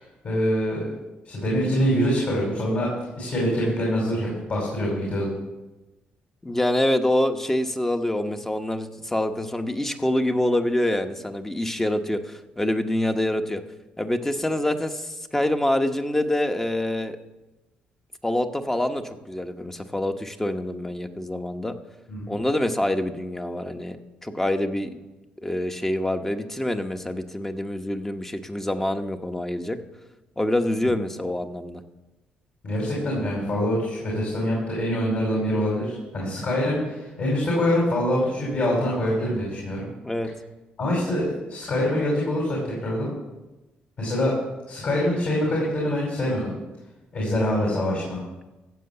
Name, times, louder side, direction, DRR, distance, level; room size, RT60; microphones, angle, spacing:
voice 1, 0.2-0.9 1.2-2.9 3.1-5.3 22.1-22.3 32.6-39.8 40.8-43.1 44.0-44.4 44.7-46.5 47.1-48.2, equal, 55° left, -3 dB, 5.1 m, -25 dB
voice 2, 6.4-13.6 14.0-17.2 18.2-21.7 22.3-24.0 24.2-25.0 25.4-29.8 30.4-31.8 40.0-40.3, left 1 dB, 10° left, 7 dB, 1.0 m, -26 dB
15.5 x 7.6 x 6.9 m, 1.1 s
cardioid pair, 90°, 3 cm